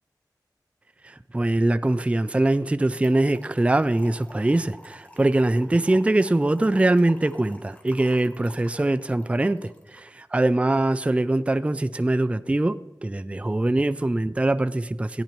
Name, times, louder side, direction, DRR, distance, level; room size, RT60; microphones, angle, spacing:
voice 1, 1.0-15.2, right 2 dB, 15° right, 13 dB, 0.3 m, -23 dB
Trickle dribble / Fill (with liquid), 3.0-10.1, left 1 dB, 20° left, 1.3 m, -49 dB
14.5 x 10.0 x 3.0 m, 1.1 s
wide cardioid pair, 65°, 7 cm